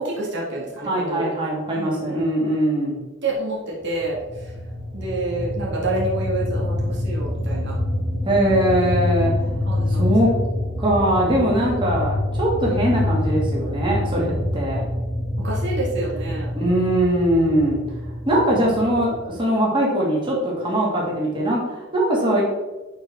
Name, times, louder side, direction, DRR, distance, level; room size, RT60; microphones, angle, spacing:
voice 1, 0.0-1.3 1.8-2.2 3.2-4.5 4.9-7.7 9.7-10.4 11.1-11.6 15.4-16.5, right 2 dB, 60° right, -4 dB, 1.9 m, -28 dB
voice 2, 0.9-3.0 8.2-9.3 9.9-10.3 10.8-14.8 16.5-17.8 18.3-22.4, right 1 dB, 25° right, -4 dB, 2.2 m, -21 dB
sound 1, 4.0-19.3, left 1 dB, 25° left, 1.4 m, -26 dB
10.5 x 4.7 x 3.7 m, 1.1 s
head